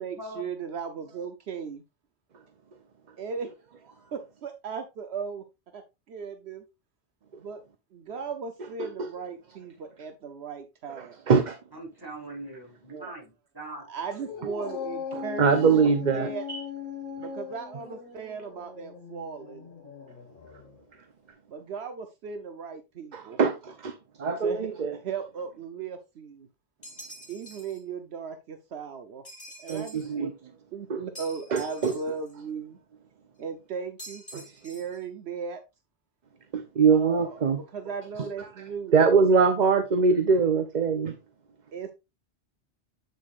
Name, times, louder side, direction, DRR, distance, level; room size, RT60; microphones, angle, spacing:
voice 1, 0.0-1.8 3.2-3.5 3.8-5.4 5.7-6.6 7.4-7.6 7.9-11.2 12.9-13.1 13.7-15.9 16.1-16.5 17.2-19.7 21.5-23.4 24.4-26.5 27.3-29.2 29.6-30.3 30.7-32.8 33.4-35.6 36.9-37.4 37.7-39.0 41.7-41.9, right 6 dB, 75° right, 1.0 m, -37 dB
voice 2, 11.7-13.8, right 1 dB, 20° right, 4.4 m, -41 dB
Dog, 14.2-20.8, left 6 dB, 50° left, 1.8 m, -39 dB
voice 3, 15.1-16.6 23.1-24.9 29.7-30.3 30.9-31.0 31.5-31.9 34.3-34.4 36.5-37.6 38.9-41.1, right 5 dB, 45° right, 0.8 m, -23 dB
sound 1, 26.8-27.8 29.2-30.1 31.1-32.3 34.0-35.0, equal, 30° left, 3.4 m, -46 dB
8.5 x 6.5 x 2.4 m
omnidirectional pair, 1.1 m